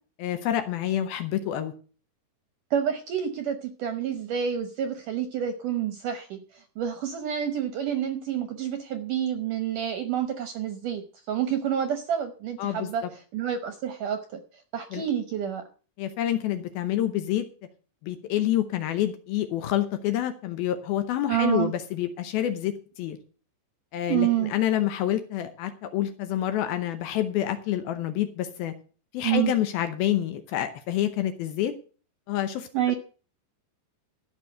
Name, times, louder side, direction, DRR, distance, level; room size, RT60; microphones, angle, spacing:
voice 1, 0.2-1.7 12.6-12.9 14.9-15.0 16.0-17.5 18.0-23.2 23.9-28.7 29.1-31.7 32.3-33.0, left 12 dB, 75° left, 10 dB, 2.4 m, -28 dB
voice 2, 2.7-13.0 13.3-14.4 14.7-15.6 21.3-21.7 24.1-24.5 29.2-29.5 32.7-32.9, right 9 dB, 70° right, 9 dB, 2.0 m, -28 dB
13.5 x 6.0 x 7.9 m, 0.40 s
omnidirectional pair, 4.9 m